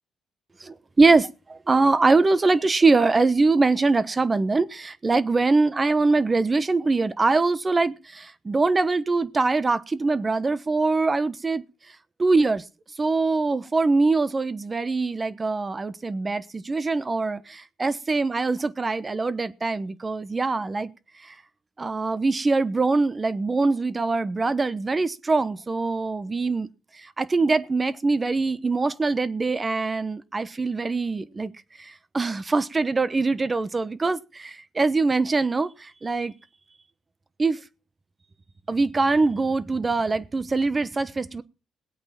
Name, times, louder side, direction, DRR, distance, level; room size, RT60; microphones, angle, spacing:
voice 1, 0.6-11.6 12.2-12.6 13.0-20.9 21.2-21.3 21.8-26.7 27.0-31.5 31.8-36.3 37.4-37.6 38.7-41.4, right 3 dB, 25° right, 1.0 m, -23 dB
18.5 x 8.6 x 5.9 m
cardioid pair, 90°, 0 cm